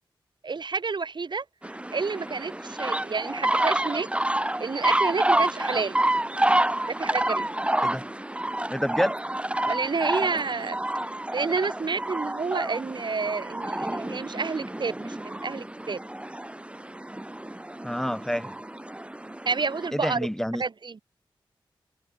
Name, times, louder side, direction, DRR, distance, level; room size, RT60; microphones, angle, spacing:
voice 1, 0.4-1.4 1.9-4.1 4.6-6.0 6.9-7.4 9.7-10.8 11.3-16.0 19.5-20.3 20.6-21.0, right 4 dB, 60° right, 1.8 m, -29 dB
sound 1, 1.6-19.9, right 1 dB, 15° right, 1.6 m, -29 dB
voice 2, 8.7-9.2 17.8-18.5 19.9-20.6, equal, 5° left, 3.6 m, -28 dB
cardioid pair, 60°, 9 cm